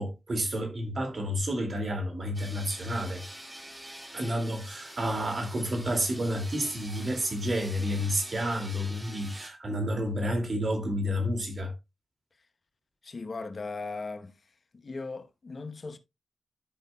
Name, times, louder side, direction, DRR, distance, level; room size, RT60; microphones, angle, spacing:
voice 1, 0.0-3.2 4.1-11.7, equal, 55° right, 2.3 m, -30 dB
sound 1, 2.3-9.5, right 1 dB, 15° right, 1.9 m, -46 dB
voice 2, 13.0-14.4 14.7-16.0, left 3 dB, 55° left, 0.9 m, -38 dB
13.0 x 5.2 x 2.2 m
cardioid pair, 50°, 0 cm